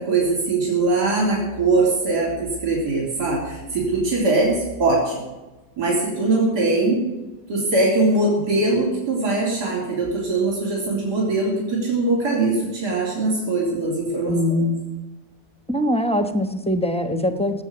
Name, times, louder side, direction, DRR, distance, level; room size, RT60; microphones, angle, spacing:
voice 1, 0.0-5.1 5.8-7.0 7.5-14.4, right 2 dB, 75° right, -4 dB, 4.0 m, -21 dB
voice 2, 14.3-14.8 15.7-17.6, left 1 dB, 5° left, 8 dB, 0.8 m, -22 dB
18.0 x 8.2 x 9.6 m, 1.1 s
omnidirectional pair, 1.8 m